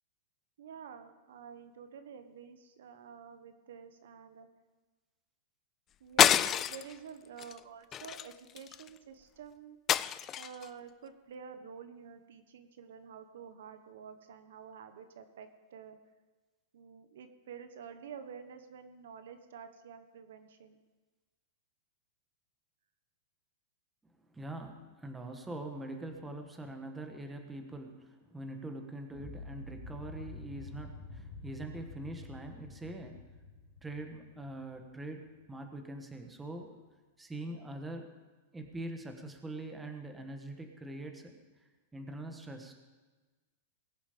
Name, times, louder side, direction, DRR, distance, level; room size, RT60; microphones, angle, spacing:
voice 1, 0.6-4.5 6.0-9.8 10.4-16.0 16.7-20.8 37.4-37.7, right 7 dB, 80° right, 9 dB, 1.2 m, -49 dB
sound 1, 6.2-6.9 7.4-7.6 7.9-8.9 9.9-10.7, left 10 dB, 25° left, 0.3 m, -27 dB
voice 2, 24.3-33.4 33.8-36.8 37.2-38.1 38.5-41.3 41.9-42.7, right 1 dB, 10° right, 4 dB, 1.3 m, -43 dB
sound 2, 29.1-35.2, left 3 dB, 60° left, 3.7 m, -48 dB
20.5 x 7.2 x 5.1 m, 1.3 s
supercardioid pair, 150°, 0 cm